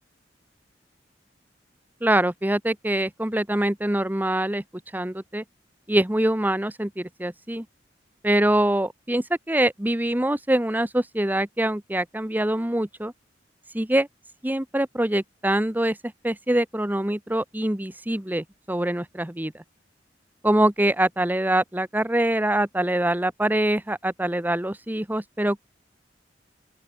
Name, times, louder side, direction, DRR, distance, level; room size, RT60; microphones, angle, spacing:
voice 1, 2.0-4.6 4.9-5.4 5.9-7.7 8.2-13.1 13.7-14.1 14.4-19.6 20.4-25.6, right 1 dB, 10° right, 1.1 m, -24 dB
open air
head